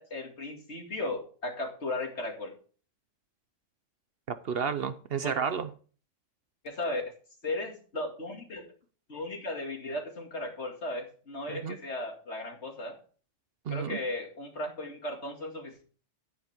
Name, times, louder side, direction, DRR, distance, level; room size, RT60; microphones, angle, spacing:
voice 1, 0.0-2.5 5.2-5.4 6.6-7.0 7.4-8.7 9.1-13.0 13.7-15.8, left 2 dB, 60° left, 2.6 m, -36 dB
voice 2, 4.3-5.7 11.5-11.8 13.7-14.0, right 7 dB, 55° right, 0.8 m, -31 dB
10.5 x 9.7 x 3.5 m
omnidirectional pair, 1.3 m